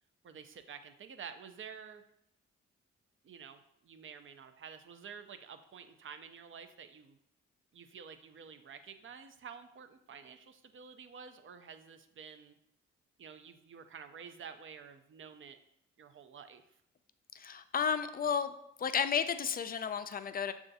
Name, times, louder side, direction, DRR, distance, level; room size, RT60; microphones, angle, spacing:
voice 1, 0.2-2.0 3.2-7.2 7.7-12.6 13.2-15.6 16.0-16.6, right 6 dB, 45° right, 9 dB, 0.5 m, -50 dB
voice 2, 17.3-18.5 18.8-20.5, left 7 dB, 30° left, 10 dB, 0.4 m, -32 dB
6.5 x 2.4 x 2.7 m, 0.76 s
supercardioid pair, 50°, 29 cm